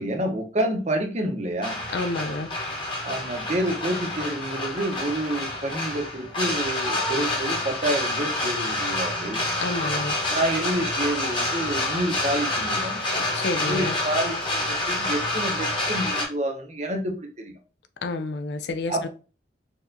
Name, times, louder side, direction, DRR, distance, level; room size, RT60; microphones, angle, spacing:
voice 1, 0.0-1.8 3.0-9.4 10.3-13.0 13.6-17.5 18.9-19.1, right 1 dB, 35° right, 0.7 m, -28 dB
sound 1, 1.6-16.2, left 2 dB, 25° left, 1.2 m, -28 dB
voice 2, 1.9-2.5 9.6-10.2 13.2-14.0 18.0-19.1, left 3 dB, 65° left, 0.4 m, -29 dB
4.4 x 2.9 x 2.6 m
head